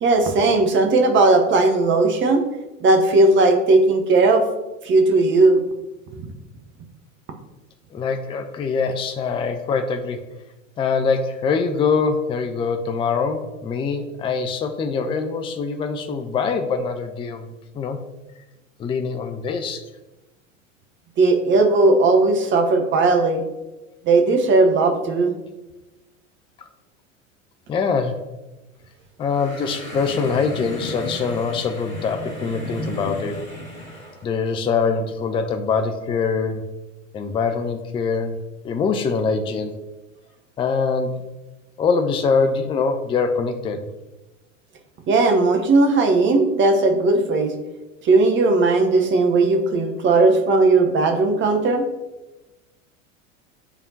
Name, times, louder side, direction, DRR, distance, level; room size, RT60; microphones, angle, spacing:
voice 1, 0.0-2.4 2.8-4.5 4.8-5.6 6.1-6.2 21.2-23.4 24.0-25.3 45.1-47.5 48.0-51.8, right 3 dB, 30° right, 4 dB, 1.0 m, -17 dB
voice 2, 7.9-10.2 10.8-18.0 18.8-19.8 27.7-28.3 29.2-33.4 34.2-36.7 37.1-38.4 38.6-39.7 40.6-41.2 41.8-43.9, left 5 dB, 15° left, 7 dB, 0.4 m, -23 dB
sound 1, 29.2-34.2, left 1 dB, 85° left, 1.6 m, -34 dB
10.0 x 3.5 x 2.8 m, 1.1 s
figure-of-eight pair, 80°, 39 cm